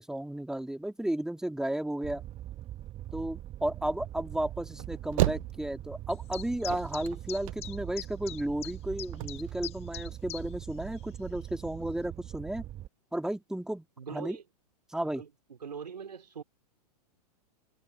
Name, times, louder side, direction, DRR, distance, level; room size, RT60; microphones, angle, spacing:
voice 1, 0.0-2.2 3.1-12.6 13.1-14.4 14.9-15.2, right 1 dB, 5° right, 2.4 m, -33 dB
Fire, 2.0-12.9, right 13 dB, 30° right, 2.0 m, -42 dB
sound 1, 4.7-6.1 6.4-7.9 8.2-8.3 8.5-8.6 9.0-9.5, right 17 dB, 55° right, 0.5 m, -32 dB
sound 2, 6.1-10.7 10.9-11.0 11.6-11.7, left 14 dB, 30° left, 1.2 m, -42 dB
voice 2, 14.0-14.4 15.0-16.4, right 6 dB, 85° right, 3.0 m, -42 dB
hypercardioid pair, 110°, 20 cm